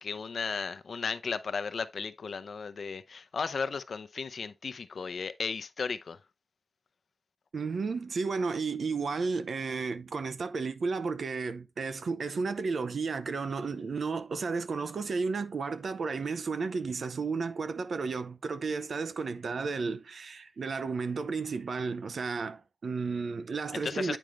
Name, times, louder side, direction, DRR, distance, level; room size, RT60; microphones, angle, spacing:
voice 1, 0.0-6.2 23.8-24.2, left 5 dB, 80° left, 0.6 m, -35 dB
voice 2, 7.5-24.2, right 4 dB, 80° right, 0.6 m, -33 dB
8.9 x 5.1 x 3.1 m
wide cardioid pair, 80°, 0 cm